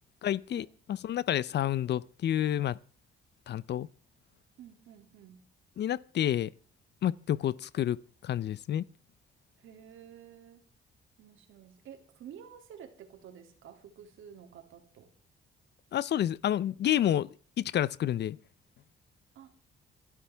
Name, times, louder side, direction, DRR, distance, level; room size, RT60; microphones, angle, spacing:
voice 1, 0.2-2.8 3.5-3.9 5.8-6.5 7.0-8.8 15.9-17.3 17.6-18.4, left 11 dB, 60° left, 0.6 m, -29 dB
voice 2, 4.6-5.4 9.6-10.6 11.2-15.1 19.3-19.5, right 9 dB, 80° right, 2.7 m, -51 dB
27.0 x 12.0 x 3.5 m
cardioid pair, 90°, 20 cm